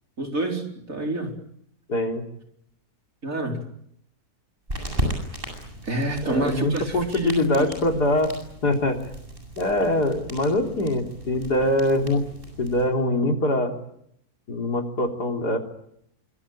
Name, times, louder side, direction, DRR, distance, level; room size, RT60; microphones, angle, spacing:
voice 1, 0.2-1.3 3.2-3.6 5.8-7.7, right 2 dB, 55° right, 2 dB, 4.8 m, -28 dB
voice 2, 1.9-2.2 6.2-8.3 8.6-9.1 9.6-12.2 12.6-13.7 14.5-15.6, left 1 dB, 80° left, 3 dB, 4.1 m, -23 dB
sound 1, 4.7-12.8, equal, 35° right, 8.4 m, -35 dB
25.5 x 25.0 x 8.9 m, 0.73 s
omnidirectional pair, 1.7 m